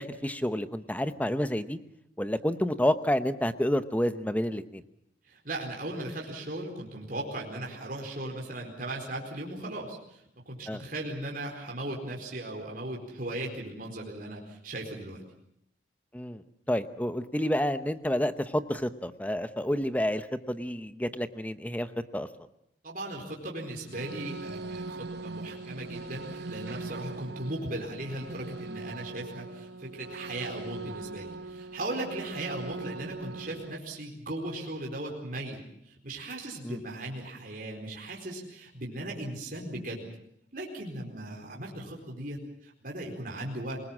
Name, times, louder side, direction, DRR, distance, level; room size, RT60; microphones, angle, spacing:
voice 1, 0.0-1.8 2.2-4.8 10.7-10.8 16.1-22.3 36.6-36.8, equal, 10° left, 11 dB, 0.9 m, -29 dB
voice 2, 5.2-15.2 22.8-35.6 35.9-40.1 40.5-43.8, right 1 dB, 50° right, -1 dB, 4.4 m, -37 dB
sound 1, 23.8-33.8, right 2 dB, 65° right, 0.9 m, -41 dB
26.0 x 19.5 x 7.5 m, 0.75 s
head